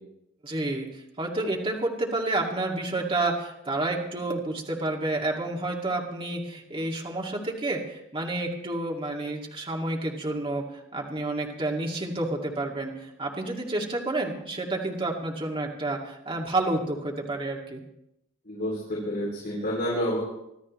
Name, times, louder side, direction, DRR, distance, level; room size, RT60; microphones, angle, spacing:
voice 1, 0.4-0.9 1.2-17.8, right 2 dB, 25° right, -1 dB, 2.4 m, -30 dB
voice 2, 18.4-20.2, equal, 50° left, -8 dB, 6.7 m, -29 dB
25.0 x 13.5 x 3.2 m, 0.82 s
head